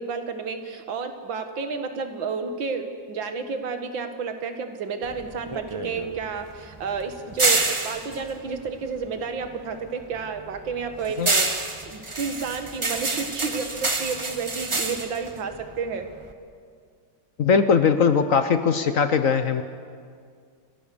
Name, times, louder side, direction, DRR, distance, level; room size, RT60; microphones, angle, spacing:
voice 1, 0.0-16.1, right 5 dB, 85° right, 7 dB, 2.2 m, -31 dB
sound 1, 5.0-9.5 9.9-16.3, right 3 dB, 20° right, 0.9 m, -28 dB
voice 2, 17.4-19.6, left 6 dB, 60° left, 10 dB, 1.0 m, -20 dB
29.0 x 15.5 x 6.9 m, 2.1 s
omnidirectional pair, 2.0 m